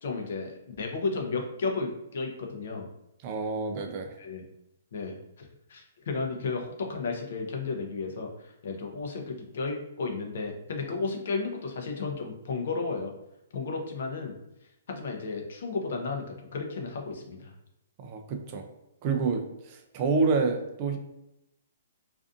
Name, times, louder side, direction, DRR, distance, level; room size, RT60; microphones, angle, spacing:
voice 1, 0.0-2.9 4.2-4.4 4.9-13.1 13.5-14.4 14.9-17.5, left 4 dB, 60° left, 2 dB, 0.5 m, -33 dB
voice 2, 3.2-4.1 18.0-18.6 19.0-21.0, right 4 dB, 30° right, 4 dB, 0.3 m, -28 dB
2.5 x 2.4 x 2.4 m, 0.87 s
hypercardioid pair, 165°, 0 cm